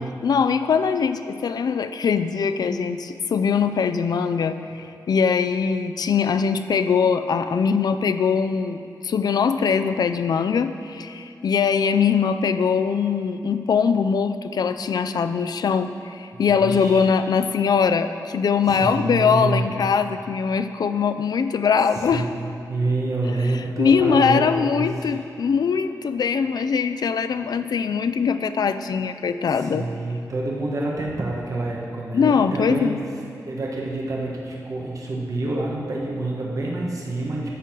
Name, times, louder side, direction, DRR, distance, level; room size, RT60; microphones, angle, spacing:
voice 1, 0.2-22.3 23.8-29.9 32.1-33.0, left 6 dB, 75° left, 10 dB, 0.4 m, -22 dB
voice 2, 16.3-17.1 18.6-19.7 21.9-24.4 24.7-25.1 29.5-32.9 33.5-37.5, right 2 dB, 55° right, -3 dB, 1.3 m, -27 dB
11.0 x 3.8 x 7.5 m, 2.6 s
wide cardioid pair, 120°, 7 cm